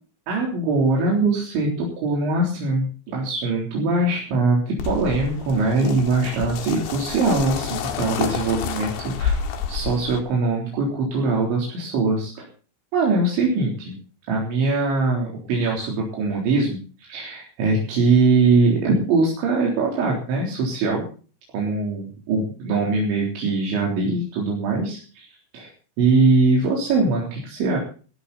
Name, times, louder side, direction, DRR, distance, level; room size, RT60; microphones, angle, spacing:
voice 1, 0.3-9.4 9.7-12.5 12.9-14.0 14.3-21.1 21.5-25.3 25.5-25.7 26.0-27.8, right 3 dB, 75° right, -2 dB, 6.1 m, -22 dB
sound 1, 4.8-10.2, left 7 dB, 75° left, 3.9 m, -29 dB
19.0 x 13.0 x 4.2 m, 0.38 s
omnidirectional pair, 5.3 m